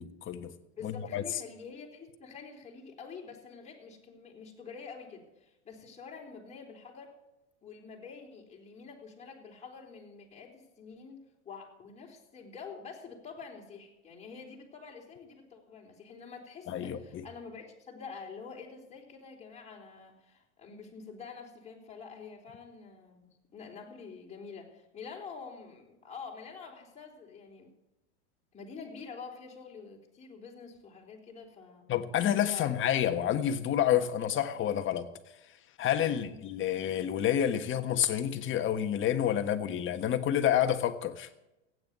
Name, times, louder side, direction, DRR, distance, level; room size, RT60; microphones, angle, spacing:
voice 1, 0.0-0.5 0.8-1.2 16.7-17.2 31.9-35.1 35.8-41.3, left 10 dB, 35° left, 1.4 m, -29 dB
voice 2, 0.7-7.1 7.6-27.7 28.5-31.9 32.5-32.8 36.1-36.4, left 5 dB, 20° left, 3.9 m, -47 dB
15.5 x 9.3 x 8.2 m
hypercardioid pair, 110°, 35 cm